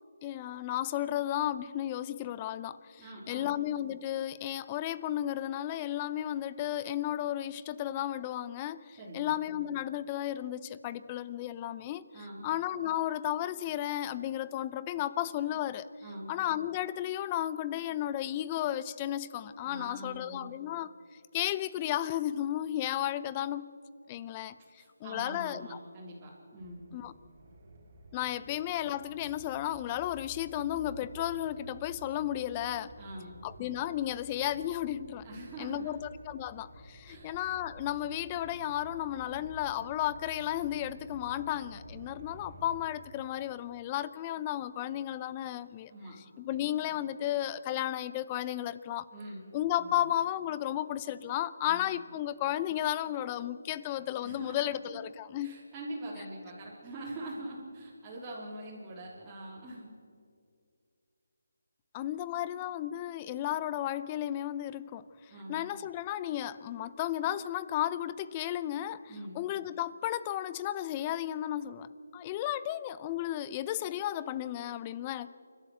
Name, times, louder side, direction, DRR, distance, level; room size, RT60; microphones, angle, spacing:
voice 1, 0.2-3.0 3.3-12.1 12.4-15.9 16.3-20.9 21.3-23.7 24.1-24.6 25.0-25.8 26.9-27.1 28.1-32.9 33.4-35.3 35.6-36.0 36.3-45.9 46.4-49.0 49.5-55.6 61.9-65.0 65.5-69.0 69.3-71.9 72.1-75.3, left 12 dB, 20° left, 16 dB, 0.6 m, -33 dB
voice 2, 3.0-3.5 9.0-9.4 12.1-12.5 16.0-16.3 19.6-20.6 24.8-26.9 33.0-33.3 35.2-35.9 37.0-37.3 45.9-46.2 46.5-47.0 49.1-49.4 49.8-50.1 51.6-52.0 54.2-55.0 55.4-59.9 65.3-65.6 69.1-69.4, right 1 dB, 15° right, -8 dB, 3.7 m, -44 dB
sound 1, 26.6-42.9, right 1 dB, 35° right, 3.7 m, -51 dB
29.0 x 12.5 x 8.1 m, 2.3 s
figure-of-eight pair, 165°, 0 cm